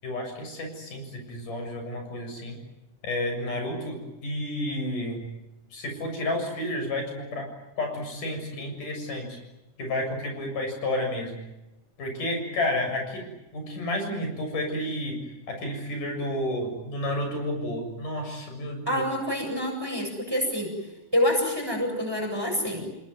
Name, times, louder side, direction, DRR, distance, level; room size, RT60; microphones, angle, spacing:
voice 1, 0.0-2.6 3.0-5.2 5.7-7.5 7.8-9.4 9.8-11.4 12.0-13.3 13.5-15.2 15.5-19.0, left 1 dB, 80° left, 4 dB, 8.8 m, -31 dB
voice 2, 18.9-20.7 21.1-22.9, equal, 5° right, 2 dB, 7.4 m, -27 dB
29.5 x 20.0 x 9.5 m, 0.96 s
omnidirectional pair, 3.7 m